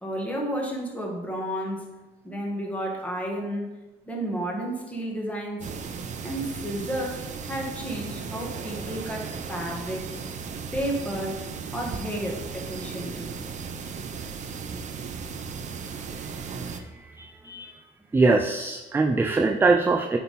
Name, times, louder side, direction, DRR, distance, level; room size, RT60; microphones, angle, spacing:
voice 1, 0.0-1.9 2.2-3.8 4.0-5.7 6.2-10.2 10.7-11.4 11.7-13.4, right 1 dB, 10° left, -1 dB, 1.6 m, -32 dB
sound 1, 5.6-16.8, right 5 dB, 45° right, 0.7 m, -36 dB
voice 2, 17.2-17.7 18.1-20.2, right 3 dB, 15° right, 5 dB, 0.4 m, -22 dB
8.7 x 3.6 x 4.1 m, 1.1 s
cardioid pair, 110°, 17 cm